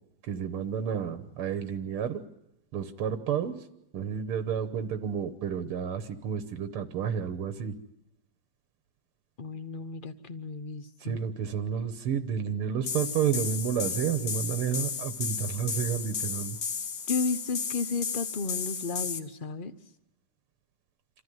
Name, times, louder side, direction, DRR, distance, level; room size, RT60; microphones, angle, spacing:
voice 1, 0.2-2.2 2.7-3.7 3.9-7.8 11.0-16.6, right 8 dB, 90° right, 11 dB, 2.0 m, -31 dB
voice 2, 9.4-11.2 17.1-19.7, left 4 dB, 65° left, 11 dB, 0.5 m, -33 dB
sound 1, 12.8-19.2, left 6 dB, 50° left, 1.5 m, -34 dB
27.5 x 14.0 x 9.4 m, 0.88 s
omnidirectional pair, 2.4 m